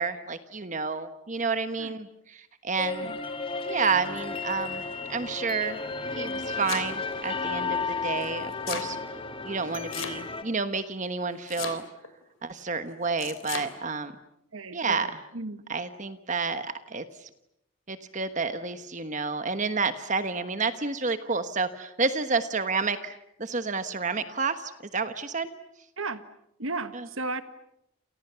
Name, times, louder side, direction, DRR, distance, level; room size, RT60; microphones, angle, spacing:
voice 1, 0.0-3.1 3.6-4.8 5.1-5.8 6.1-9.0 9.4-11.8 12.4-14.1 14.7-15.1 15.7-17.3 17.9-25.5 26.9-27.0, right 4 dB, 35° right, 10 dB, 1.2 m, -30 dB
sound 1, 2.8-10.4, left 4 dB, 25° left, 2.3 m, -33 dB
Domestic sounds home sounds, 6.1-7.2 8.2-8.9 9.9-10.5 11.5-12.1 13.2-13.7, left 8 dB, 70° left, 3.1 m, -36 dB
voice 2, 14.5-15.6 26.0-26.3 26.6-27.4, right 3 dB, 75° right, 11 dB, 1.5 m, -35 dB
29.5 x 28.5 x 6.9 m, 0.79 s
head